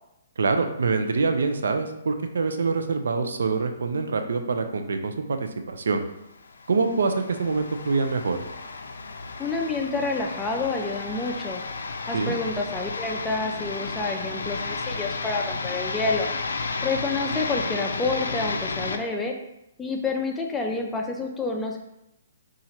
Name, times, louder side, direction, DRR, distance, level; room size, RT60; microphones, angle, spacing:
voice 1, 0.4-6.0 6.7-8.4 12.1-12.4, right 4 dB, 75° right, 7 dB, 0.4 m, -25 dB
sound 1, 6.4-19.0, left 4 dB, 80° left, 0.4 m, -32 dB
voice 2, 9.4-11.6 12.1-16.3 16.8-19.4 19.8-21.8, left 3 dB, 10° left, 1 dB, 0.4 m, -28 dB
2.9 x 2.4 x 4.2 m, 0.85 s
hypercardioid pair, 140°, 0 cm